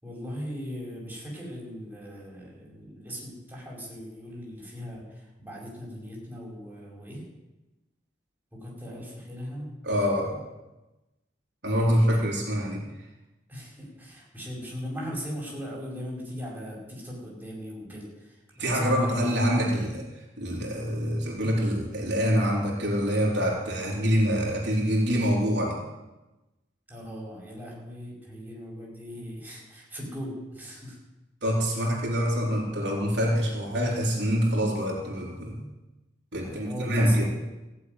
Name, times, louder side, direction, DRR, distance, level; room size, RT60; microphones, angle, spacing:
voice 1, 0.0-7.2 8.5-9.7 11.7-12.2 13.5-19.3 26.9-31.0 36.4-37.3, equal, 10° right, -4 dB, 5.5 m, -39 dB
voice 2, 9.8-10.5 11.6-12.8 18.6-20.1 20.4-25.8 31.4-35.6 36.3-37.3, equal, 70° right, -3 dB, 3.6 m, -25 dB
15.5 x 7.7 x 9.6 m, 1.0 s
head